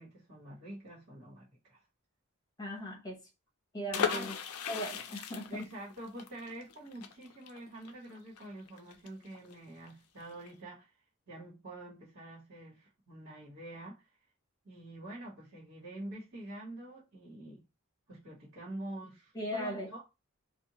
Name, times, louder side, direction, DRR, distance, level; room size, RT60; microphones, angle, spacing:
voice 1, 0.0-1.8 3.9-4.3 5.5-10.9 11.3-14.0 14.6-17.6 18.1-20.0, right 1 dB, 70° right, 1.5 m, -46 dB
voice 2, 2.6-3.2 3.7-4.3 4.7-5.7 19.3-19.9, equal, 15° left, 0.9 m, -38 dB
sound 1, 3.9-9.5 9.8-9.9 10.2-10.5, left 7 dB, 80° left, 0.4 m, -37 dB
2.6 x 2.4 x 2.8 m
head